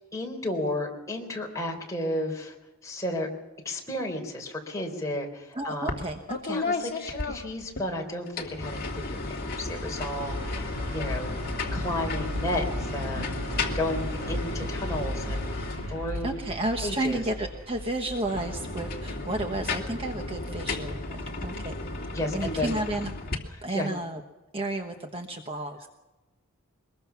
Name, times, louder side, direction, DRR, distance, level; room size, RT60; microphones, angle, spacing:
voice 1, 0.1-2.5 2.8-3.3 3.6-6.0 6.4-11.4 11.7-13.4 13.7-16.4 16.8-17.2 22.1-22.7 23.5-23.9, left 1 dB, 15° left, 0 dB, 3.9 m, -33 dB
voice 2, 5.5-6.6 16.2-21.7 22.0-23.1 23.6-24.2 24.5-25.9, right 1 dB, 25° right, 4 dB, 1.2 m, -32 dB
sound 1, 5.9-6.0 6.3-7.9 8.3-16.3 18.1-23.3, left 3 dB, 40° left, 2.8 m, -34 dB
sound 2, 10.2-20.1, equal, 75° right, 2.4 m, -36 dB
23.0 x 21.5 x 5.9 m, 1.1 s
head